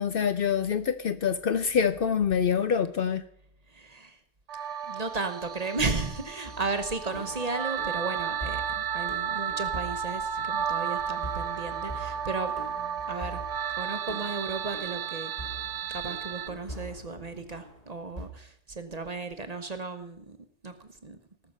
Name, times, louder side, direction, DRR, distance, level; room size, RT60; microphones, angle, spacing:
voice 1, 0.0-3.2, left 7 dB, 60° left, 11 dB, 0.7 m, -26 dB
voice 2, 3.7-4.2 4.8-12.5 13.1-13.4 13.7-15.3 15.9-20.4 20.6-21.2, right 3 dB, 35° right, 8 dB, 0.9 m, -34 dB
sound 1, 4.5-16.5, right 8 dB, 75° right, 1.0 m, -33 dB
sound 2, 6.4-18.3, equal, 35° left, 1.9 m, -44 dB
19.0 x 6.4 x 5.4 m, 0.68 s
omnidirectional pair, 1.2 m